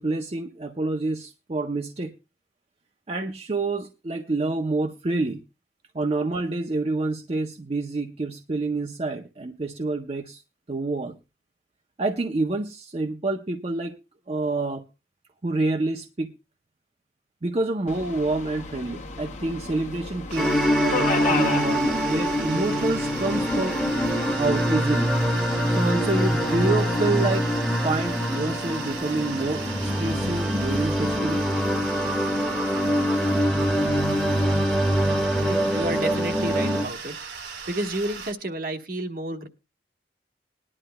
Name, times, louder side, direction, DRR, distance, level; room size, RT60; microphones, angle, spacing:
voice 1, 0.0-2.1 3.1-5.4 5.9-10.4 10.7-11.1 12.0-14.0 14.3-14.8 15.4-16.3 17.4-23.8 24.4-25.1 25.7-27.5 27.8-31.4, right 2 dB, 35° right, 4 dB, 0.6 m, -27 dB
Subway metro underground, 17.9-27.0, left 4 dB, 40° left, 1.3 m, -35 dB
sound 1, 20.3-38.3, right 6 dB, 80° right, 1.7 m, -38 dB
sound 2, 20.4-36.9, equal, ahead, 1.2 m, -24 dB
voice 2, 35.4-37.1 37.7-39.5, right 1 dB, 55° right, 6 dB, 1.2 m, -31 dB
20.5 x 11.0 x 2.2 m, 0.27 s
head